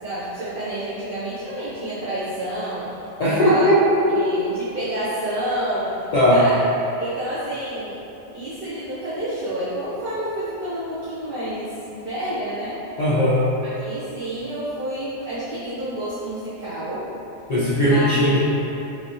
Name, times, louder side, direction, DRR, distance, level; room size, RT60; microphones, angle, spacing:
voice 1, 0.0-2.9 3.2-3.7 4.1-6.6 7.0-7.9 8.3-12.8 13.6-17.1 17.8-18.4, right 1 dB, 50° right, -12 dB, 1.0 m, -29 dB
voice 2, 3.2-4.2 6.1-6.4 13.0-13.4 17.5-18.4, equal, 40° left, -10 dB, 0.6 m, -17 dB
5.2 x 3.0 x 3.0 m, 2.9 s
omnidirectional pair, 1.2 m